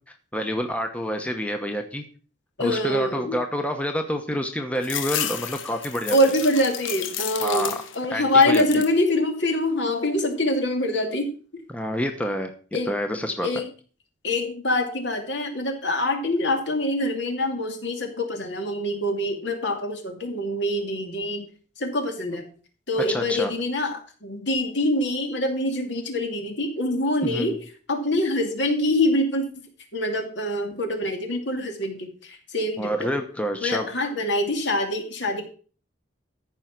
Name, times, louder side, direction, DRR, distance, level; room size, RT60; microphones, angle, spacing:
voice 1, 0.3-2.0 2.6-6.2 7.4-7.8 8.1-8.7 11.7-12.5 12.8-13.5 23.0-23.5 27.2-27.6 32.8-33.9, equal, 5° left, 5 dB, 1.0 m, -28 dB
voice 2, 2.6-3.4 6.1-11.3 12.7-12.9 13.4-13.7 14.2-21.5 21.8-22.5 22.9-29.4 29.9-33.1 33.6-35.4, left 1 dB, 65° left, 3 dB, 2.6 m, -25 dB
sound 1, 4.8-8.1 8.4-9.0 9.5-10.2, left 10 dB, 90° left, 1.1 m, -32 dB
14.5 x 5.6 x 6.0 m, 0.40 s
head